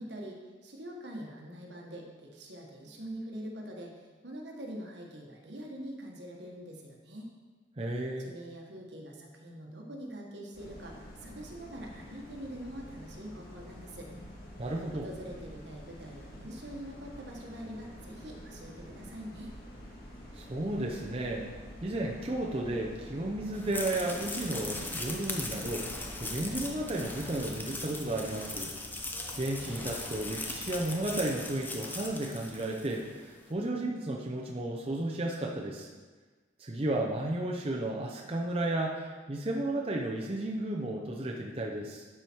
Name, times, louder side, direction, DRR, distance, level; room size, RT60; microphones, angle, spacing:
voice 1, 0.0-7.3 8.2-14.1 14.9-19.5, right 1 dB, 75° right, 0 dB, 1.5 m, -44 dB
voice 2, 7.8-8.3 14.6-15.1 20.3-21.5 21.8-28.7 29.4-35.9 36.6-42.1, right 1 dB, 30° right, -1 dB, 0.7 m, -33 dB
sound 1, 10.5-27.5, equal, 50° left, 2.1 m, -48 dB
sound 2, 23.5-33.1, left 2 dB, 10° left, 0.7 m, -39 dB
sound 3, 25.4-31.2, equal, 70° left, 2.0 m, -51 dB
11.5 x 4.9 x 4.6 m, 1.4 s
head